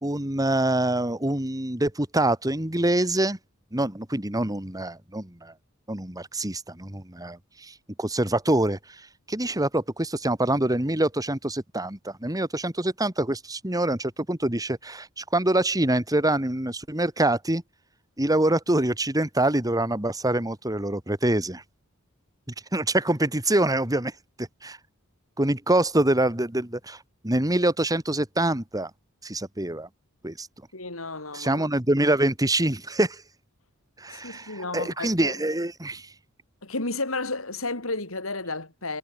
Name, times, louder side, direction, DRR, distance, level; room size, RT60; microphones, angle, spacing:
voice 1, 0.0-3.4 3.7-5.5 5.9-17.6 18.2-21.6 22.7-24.1 24.4-24.8 25.4-28.9 29.2-29.9 30.2-30.5 31.3-33.2 34.0-36.1, right 1 dB, 15° right, 2.8 m, -25 dB
voice 2, 30.7-31.7 34.1-35.3 36.6-39.0, left 3 dB, 75° left, 6.2 m, -32 dB
head